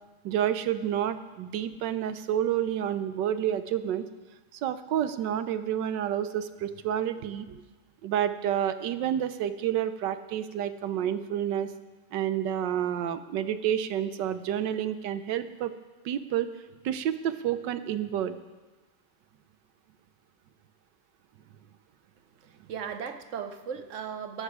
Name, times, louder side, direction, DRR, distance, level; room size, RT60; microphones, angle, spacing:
voice 1, 0.2-4.0 4.5-7.5 8.0-11.7 12.1-15.7 16.0-16.5 16.8-18.4, right 10 dB, 80° right, 11 dB, 1.4 m, -29 dB
voice 2, 7.2-7.6 22.4-24.4, right 7 dB, 55° right, 9 dB, 0.9 m, -38 dB
15.5 x 10.0 x 4.8 m, 1.2 s
omnidirectional pair, 1.9 m